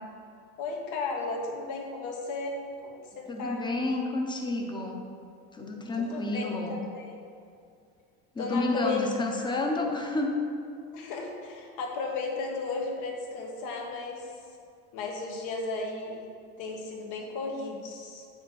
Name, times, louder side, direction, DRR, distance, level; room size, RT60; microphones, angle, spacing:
voice 1, 0.6-3.7 6.0-7.2 8.4-9.0 10.9-14.3 14.9-16.3 16.6-18.2, left 3 dB, 65° left, 0 dB, 1.6 m, -35 dB
voice 2, 3.3-5.0 5.5-6.8 8.3-10.3, left 2 dB, 15° left, 2 dB, 0.9 m, -30 dB
8.4 x 6.1 x 4.1 m, 2.4 s
cardioid pair, 140°, 33 cm